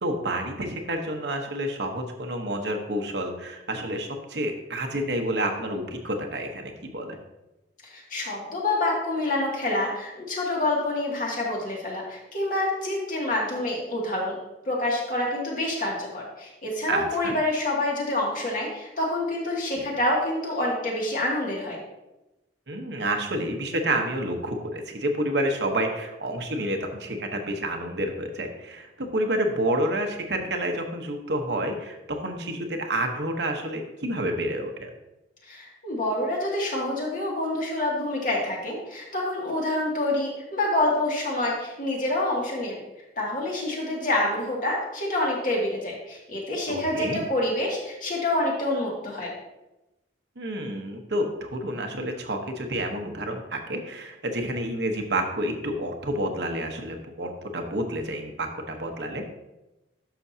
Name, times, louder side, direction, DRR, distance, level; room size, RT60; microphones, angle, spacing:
voice 1, 0.0-7.2 16.9-17.3 22.7-34.9 46.7-47.2 50.4-59.2, right 1 dB, 65° right, 3 dB, 1.1 m, -29 dB
voice 2, 7.8-14.4 14.7-21.8 35.5-42.8 43.2-49.3, left 1 dB, 45° left, -3 dB, 2.3 m, -27 dB
12.0 x 6.2 x 2.8 m, 0.97 s
head